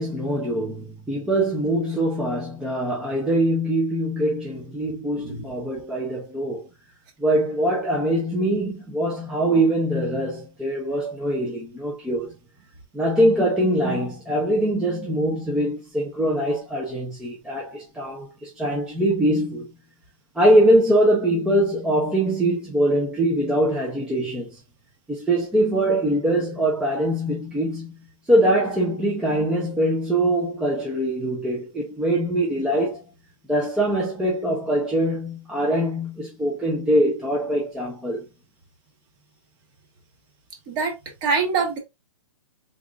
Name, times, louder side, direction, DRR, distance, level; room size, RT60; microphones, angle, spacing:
voice 1, 0.0-6.7 7.2-12.3 12.9-19.7 20.3-24.6 25.1-28.0 28.3-33.0 33.5-38.2, right 1 dB, 5° right, 0.6 m, -23 dB
voice 2, 41.2-41.8, right 5 dB, 25° right, 1.2 m, -23 dB
3.8 x 3.5 x 2.4 m
hypercardioid pair, 155°, 18 cm